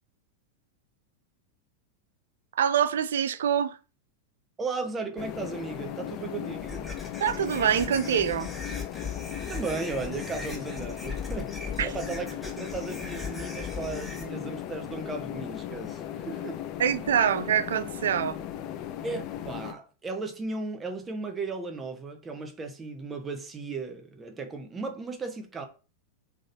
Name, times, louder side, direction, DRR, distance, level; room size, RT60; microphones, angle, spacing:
voice 1, 2.5-3.8 7.2-8.5 11.8-11.9 16.8-18.4, right 8 dB, 60° right, 0.3 m, -25 dB
voice 2, 4.6-6.9 9.5-11.5 11.8-16.6 19.0-25.6, right 3 dB, 15° right, 0.8 m, -36 dB
sound 1, 5.2-19.7, left 10 dB, 40° left, 0.4 m, -37 dB
sound 2, 6.6-14.2, left 4 dB, 5° left, 1.2 m, -39 dB
3.7 x 3.5 x 2.7 m
figure-of-eight pair, 90°, 0 cm